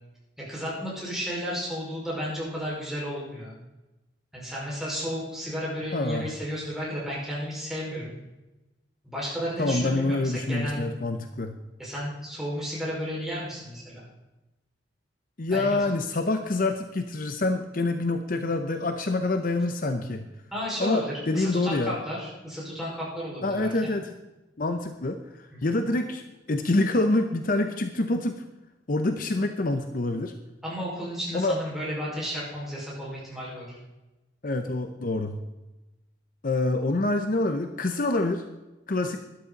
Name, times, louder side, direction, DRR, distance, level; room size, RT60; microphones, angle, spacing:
voice 1, 0.4-3.5 4.3-8.2 9.0-10.8 11.8-14.1 15.5-15.8 20.5-24.0 25.5-25.8 30.6-33.8, equal, ahead, -6 dB, 5.1 m, -33 dB
voice 2, 5.9-6.3 9.6-11.6 15.4-20.3 20.8-21.9 23.4-24.1 24.6-25.2 25.6-26.2 26.5-28.3 28.9-30.3 31.3-31.6 34.4-35.4 36.4-38.5 38.9-39.2, left 2 dB, 50° left, 7 dB, 0.7 m, -26 dB
12.5 x 11.5 x 4.0 m, 1.0 s
head